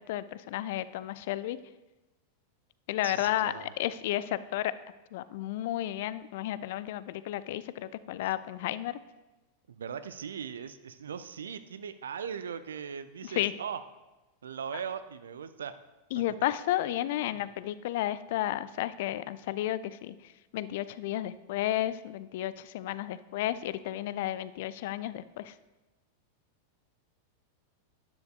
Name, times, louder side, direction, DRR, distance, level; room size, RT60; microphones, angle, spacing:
voice 1, 0.1-1.6 2.9-4.7 5.1-9.0 13.2-13.5 16.1-20.1 20.5-25.5, left 13 dB, 50° left, 16 dB, 0.3 m, -32 dB
voice 2, 3.0-3.7 9.7-13.8 14.4-15.7 17.3-17.4, right 7 dB, 65° right, 12 dB, 0.5 m, -39 dB
11.5 x 10.5 x 2.3 m, 1.1 s
figure-of-eight pair, 90°, 0 cm